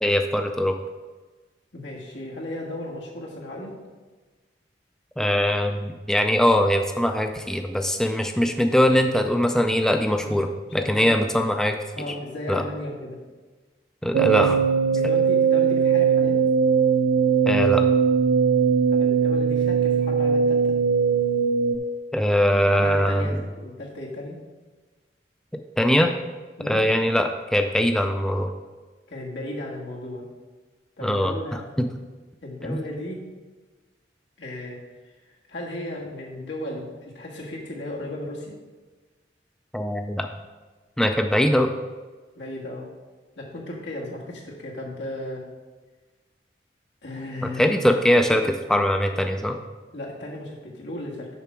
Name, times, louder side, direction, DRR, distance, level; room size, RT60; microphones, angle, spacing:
voice 1, 0.0-0.7 5.2-11.8 12.1-12.2 12.5-12.6 14.0-14.6 17.5-17.8 22.1-23.3 25.8-26.1 26.7-28.5 31.0-31.3 31.8-31.9 32.7-32.8 39.7-40.3 41.0-41.7 47.4-49.6, equal, 5° left, 5 dB, 0.3 m, -21 dB
voice 2, 1.7-3.8 10.1-10.3 10.6-11.5 12.0-13.2 14.9-16.4 18.9-20.8 22.6-24.4 26.6-26.8 29.1-30.2 31.0-31.6 32.4-33.2 34.4-34.8 35.5-38.6 42.4-42.9 43.4-45.4 47.0-48.0 49.9-51.3, left 1 dB, 90° left, -2 dB, 1.7 m, -35 dB
sound 1, 14.1-21.8, right 6 dB, 80° right, 0.3 m, -20 dB
6.9 x 6.0 x 4.4 m, 1.3 s
head